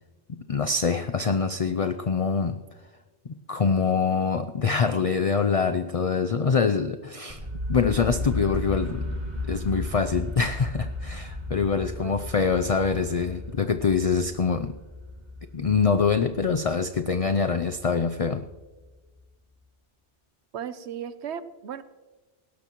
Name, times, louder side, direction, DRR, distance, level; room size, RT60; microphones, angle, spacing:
voice 1, 0.3-2.6 3.5-7.4 7.7-9.1 9.5-14.7 15.5-18.5, left 5 dB, 45° left, 8 dB, 0.5 m, -24 dB
sound 1, 7.3-19.1, left 2 dB, 35° right, 2.3 m, -35 dB
voice 2, 20.5-21.8, right 8 dB, 70° right, 13 dB, 1.0 m, -35 dB
19.0 x 17.5 x 3.0 m, 1.2 s
omnidirectional pair, 1.2 m